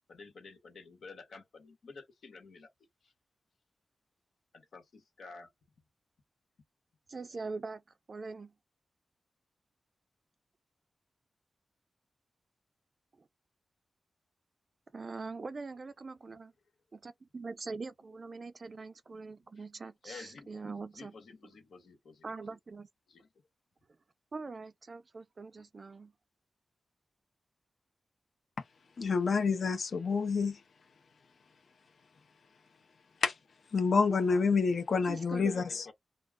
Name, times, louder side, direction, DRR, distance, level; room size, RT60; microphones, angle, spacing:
voice 1, 0.1-3.1 4.5-5.5 16.3-16.4 19.5-19.6 20.0-20.7 20.9-22.3 23.1-23.3 35.0-35.9, left 4 dB, 75° left, 1.2 m, -51 dB
voice 2, 7.1-7.8 8.1-8.5 13.2-13.3 14.9-16.5 16.9-21.1 22.2-22.9 24.3-26.1 35.1-35.6, right 4 dB, 40° right, 0.4 m, -43 dB
voice 3, 29.0-30.6 33.2-33.4 33.7-35.9, left 5 dB, 55° left, 0.6 m, -28 dB
2.3 x 2.2 x 3.4 m
wide cardioid pair, 165°, 0 cm